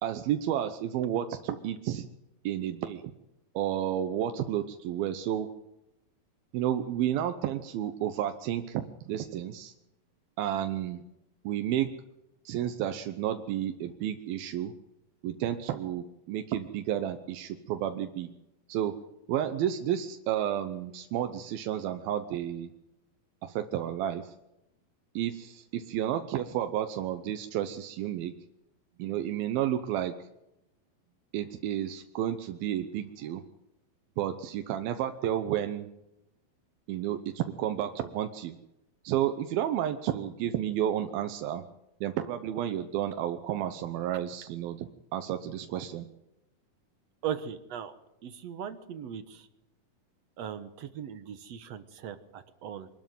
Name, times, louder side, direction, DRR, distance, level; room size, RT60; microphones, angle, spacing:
voice 1, 0.0-2.1 2.4-3.0 3.6-5.5 6.5-9.7 10.4-11.0 11.4-11.9 12.5-14.7 15.2-18.3 18.7-18.9 19.3-22.7 23.4-24.2 25.1-28.3 29.0-30.1 31.3-33.4 34.2-35.9 36.9-38.5 39.0-41.6 42.0-46.1, right 11 dB, 90° right, 7 dB, 2.9 m, -31 dB
voice 2, 47.2-47.9 48.2-49.5 50.4-52.9, right 9 dB, 60° right, 11 dB, 1.9 m, -38 dB
24.0 x 12.5 x 9.2 m, 0.89 s
omnidirectional pair, 4.1 m